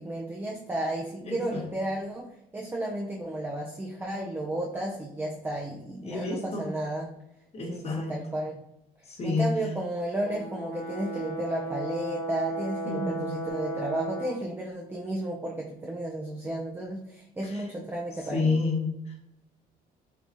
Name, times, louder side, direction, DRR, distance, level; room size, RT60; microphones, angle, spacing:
voice 1, 0.0-7.1 7.7-8.6 9.2-18.6, right 1 dB, 10° right, -2 dB, 0.4 m, -33 dB
voice 2, 1.2-1.6 6.0-6.7 7.5-8.1 9.1-9.5 12.8-13.4 17.4-17.6 18.3-19.2, left 3 dB, 40° left, 0 dB, 1.1 m, -29 dB
Brass instrument, 10.2-14.4, right 1 dB, 85° left, 0.9 m, -35 dB
4.5 x 2.3 x 2.6 m, 0.82 s
cardioid pair, 110°, 17 cm